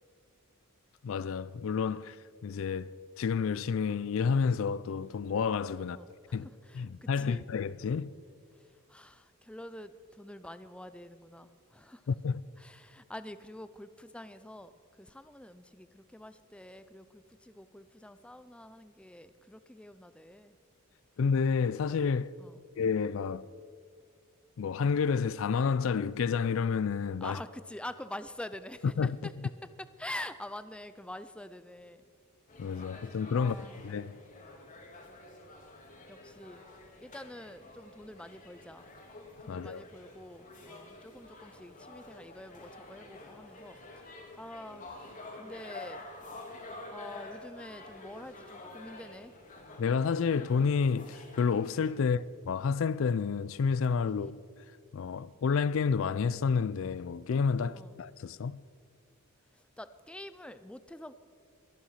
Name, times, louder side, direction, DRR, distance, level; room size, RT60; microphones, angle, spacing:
voice 1, 1.0-2.2 2.4-6.0 6.3-6.5 6.7-8.1 12.1-12.5 21.2-22.3 22.8-23.4 24.6-27.4 29.0-29.2 32.6-34.2 39.5-39.8 49.8-54.3 54.9-58.6, left 5 dB, 65° left, 0.4 m, -30 dB
voice 2, 5.9-7.5 8.5-12.1 12.6-20.6 22.4-22.6 27.2-29.3 29.8-32.0 33.3-33.8 36.1-36.6 37.0-38.9 39.4-46.0 46.9-49.3 54.1-54.4 57.6-58.0 59.5-61.1, left 1 dB, 5° left, 0.4 m, -46 dB
sound 1, 32.5-51.9, left 2 dB, 35° left, 1.9 m, -49 dB
22.5 x 9.1 x 5.7 m
head